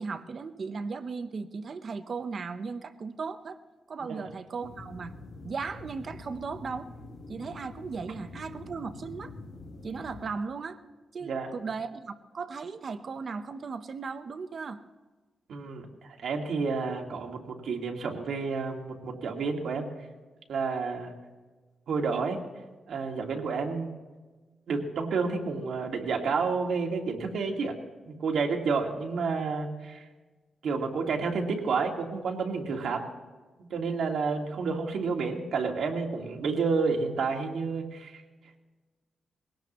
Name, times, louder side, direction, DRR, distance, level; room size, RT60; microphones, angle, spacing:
voice 1, 0.0-3.6 3.9-5.1 5.4-6.9 7.3-9.3 9.8-10.8 11.1-14.8, right 4 dB, 40° right, 10 dB, 0.8 m, -36 dB
sound 1, 4.6-10.3, left 2 dB, 85° left, 4.0 m, -45 dB
voice 2, 15.5-19.9 20.5-21.1 21.9-22.4 22.9-23.9 24.7-27.7 28.1-30.1 30.6-33.1 33.7-38.2, right 4 dB, 70° right, 1 dB, 2.1 m, -30 dB
21.0 x 17.5 x 3.1 m, 1.3 s
wide cardioid pair, 170°, 0 cm